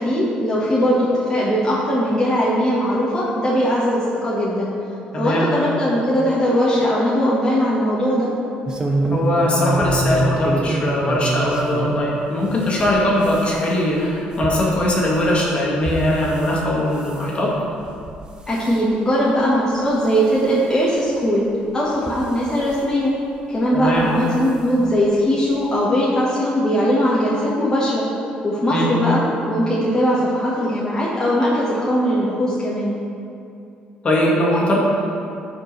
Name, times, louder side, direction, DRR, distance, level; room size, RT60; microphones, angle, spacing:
voice 1, 0.0-4.7 5.1-8.3 18.5-21.5 21.7-23.1 23.5-32.9, equal, 20° left, -8 dB, 1.3 m, -20 dB
voice 2, 5.1-5.5 9.1-17.6 23.7-24.1 28.7-28.9 34.0-34.8, left 1 dB, 35° left, -4 dB, 1.8 m, -20 dB
sound 1, 8.7-12.0 12.4-16.6 16.9-17.3 17.9-18.2 18.5-18.8 19.4-19.5 19.8-19.9 21.1-21.2 21.9-22.8 23.9-24.1 24.4-24.5 24.9-25.0, right 2 dB, 25° right, 0.8 m, -25 dB
12.0 x 4.5 x 3.2 m, 2.6 s
cardioid pair, 105°, 3 cm